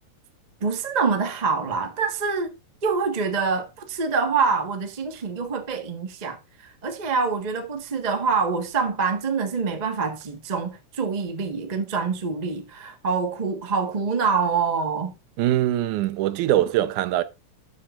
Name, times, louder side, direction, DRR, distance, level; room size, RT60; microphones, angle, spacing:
voice 1, 0.6-2.5 2.8-6.4 6.6-15.1, right 5 dB, 45° right, 0.5 m, -25 dB
voice 2, 15.4-17.2, right 13 dB, 80° right, 2.2 m, -22 dB
13.0 x 7.3 x 2.5 m
omnidirectional pair, 3.5 m